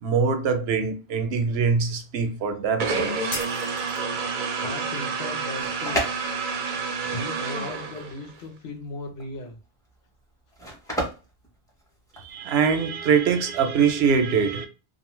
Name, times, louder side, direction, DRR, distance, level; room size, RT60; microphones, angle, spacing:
voice 1, 0.0-3.3 12.2-14.7, right 6 dB, 85° right, 0.8 m, -23 dB
sound 1, 2.8-8.4, right 4 dB, 60° right, 0.6 m, -29 dB
sound 2, 3.3-4.3, left 3 dB, 35° left, 0.8 m, -36 dB
voice 2, 4.5-6.0 6.6-9.6, left 2 dB, 85° left, 1.0 m, -37 dB
sound 3, 5.3-12.4, right 1 dB, 5° left, 0.6 m, -34 dB
2.6 x 2.1 x 3.0 m
omnidirectional pair, 1.0 m